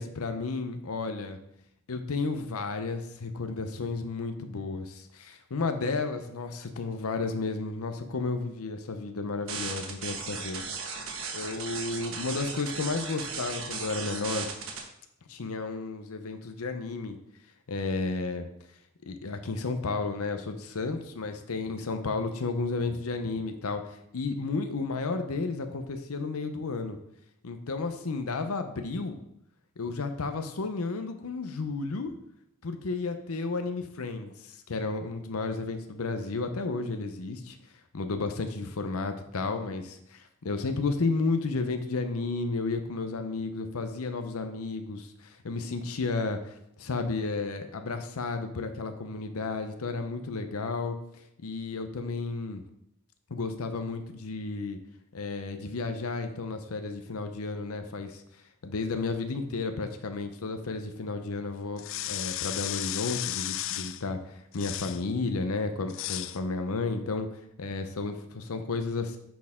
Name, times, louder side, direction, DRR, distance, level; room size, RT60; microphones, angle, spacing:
voice 1, 0.0-1.4 1.9-10.8 11.3-14.5 15.3-17.2 17.7-18.5 19.1-27.0 27.4-29.2 29.8-32.1 32.6-37.6 37.9-51.0 51.4-52.6 53.3-54.8 55.1-58.2 58.6-67.3 67.6-69.2, left 3 dB, 80° left, 7 dB, 0.7 m, -32 dB
sound 1, 9.5-14.8, right 5 dB, 65° right, 1.3 m, -36 dB
sound 2, 61.8-64.0 64.5-65.0 65.9-66.4, left 13 dB, 60° left, 0.3 m, -34 dB
10.0 x 4.4 x 3.6 m, 0.76 s
head